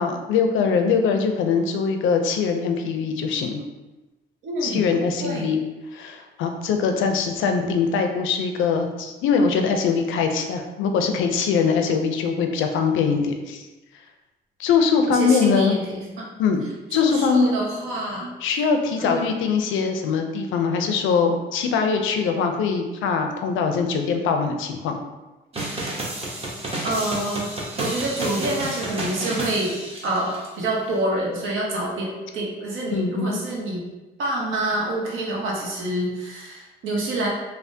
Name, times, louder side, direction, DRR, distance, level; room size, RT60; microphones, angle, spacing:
voice 1, 0.0-3.7 4.6-5.6 5.9-13.7 14.6-15.8 16.4-16.6 16.9-17.6 18.4-25.0 32.9-33.4, left 5 dB, 85° left, 5 dB, 0.4 m, -22 dB
voice 2, 4.4-4.9 5.2-5.5 15.1-16.3 16.9-18.3 19.0-19.5 26.8-29.7 30.0-33.8 34.2-37.3, right 1 dB, 90° right, -2 dB, 0.8 m, -27 dB
sound 1, 25.5-30.5, right 1 dB, 30° right, 0.8 m, -31 dB
3.3 x 2.0 x 2.6 m, 1.1 s
cardioid pair, 90°, 20 cm